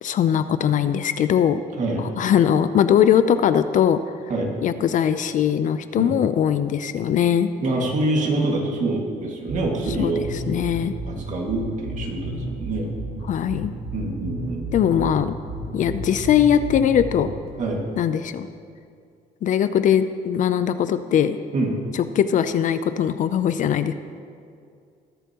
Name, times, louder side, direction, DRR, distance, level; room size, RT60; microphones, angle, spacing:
voice 1, 0.0-1.6 2.0-4.0 4.6-7.5 10.0-10.9 13.3-13.7 14.7-15.4 15.7-17.3 18.0-18.5 19.4-21.4 21.9-23.9, left 9 dB, 50° left, 11 dB, 0.5 m, -20 dB
voice 2, 7.6-10.2 11.1-12.9 13.9-14.6 17.6-17.8 21.5-21.7, right 2 dB, 45° right, 0 dB, 2.0 m, -25 dB
sound 1, 9.5-17.5, right 1 dB, 90° right, 2.1 m, -32 dB
20.5 x 7.0 x 2.9 m, 2.3 s
cardioid pair, 110°, 17 cm